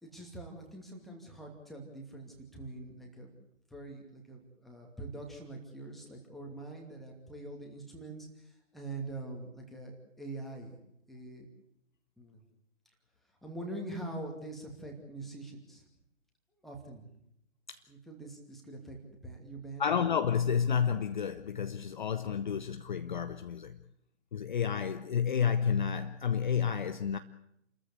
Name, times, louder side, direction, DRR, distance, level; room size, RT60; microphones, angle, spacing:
voice 1, 0.0-3.3 3.7-10.7 11.1-11.5 12.2-12.4 13.4-15.8 16.6-17.1 17.9-19.9, right 2 dB, ahead, 2.5 m, -44 dB
voice 2, 19.8-23.8 24.3-27.2, left 7 dB, 40° left, 0.8 m, -30 dB
29.0 x 14.0 x 8.2 m
figure-of-eight pair, 135°, 38 cm